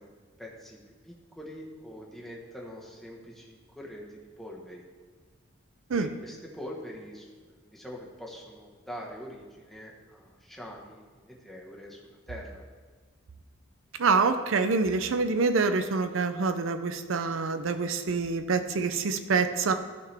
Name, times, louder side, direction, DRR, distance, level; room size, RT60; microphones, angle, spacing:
voice 1, 0.0-4.8 5.9-12.6, equal, ahead, -3 dB, 1.3 m, -44 dB
voice 2, 14.0-19.7, right 4 dB, 70° right, 9 dB, 0.5 m, -26 dB
14.5 x 5.9 x 3.4 m, 1.5 s
head